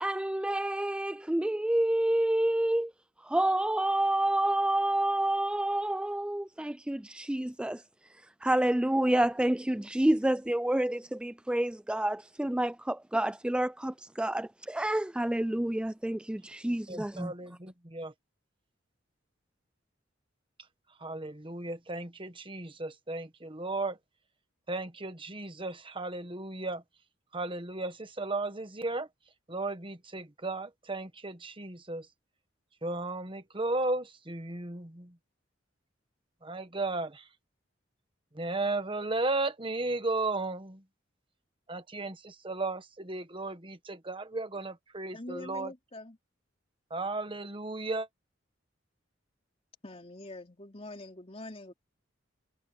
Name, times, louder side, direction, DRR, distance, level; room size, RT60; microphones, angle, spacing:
voice 1, 0.0-2.9 3.3-7.8 8.4-17.3, right 1 dB, 5° right, 0.3 m, -28 dB
voice 2, 16.9-18.1 21.0-23.9 24.7-26.8 27.3-29.1 29.5-32.0 32.8-35.1 36.4-37.2 38.4-40.8 41.7-45.7 46.9-48.1, right 2 dB, 25° right, 1.5 m, -35 dB
voice 3, 45.1-46.2 49.8-51.7, left 2 dB, 30° left, 3.5 m, -44 dB
head